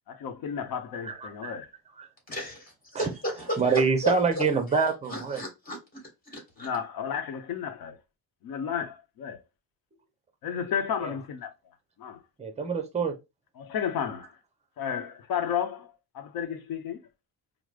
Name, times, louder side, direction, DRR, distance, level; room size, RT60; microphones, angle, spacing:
voice 1, 0.1-1.7 6.6-8.0 8.4-9.4 10.4-11.5 12.0-12.2 13.6-14.3 14.8-15.9 16.1-17.0, left 8 dB, 65° left, 0.8 m, -32 dB
voice 2, 1.1-1.5 2.0-2.1 2.9-3.1 3.6-5.4 11.0-11.1 12.4-13.1, right 5 dB, 15° right, 0.6 m, -26 dB
voice 3, 2.3-3.6 4.0-4.4 5.1-5.8 6.3-6.7, left 1 dB, 20° left, 1.7 m, -34 dB
4.7 x 2.0 x 2.3 m
cardioid pair, 150°, 39 cm